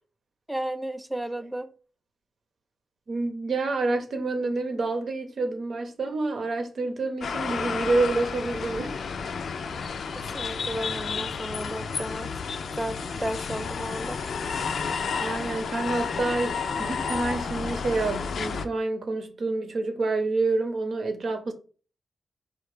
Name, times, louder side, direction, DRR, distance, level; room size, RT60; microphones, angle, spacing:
voice 1, 0.5-1.7 10.1-12.3 12.7-14.2, right 1 dB, 5° right, 0.5 m, -33 dB
voice 2, 3.1-9.0 15.2-21.5, right 3 dB, 70° right, 0.9 m, -28 dB
sound 1, 7.2-18.7, left 5 dB, 80° left, 0.4 m, -31 dB
4.5 x 2.3 x 4.8 m
wide cardioid pair, 90°, 0 cm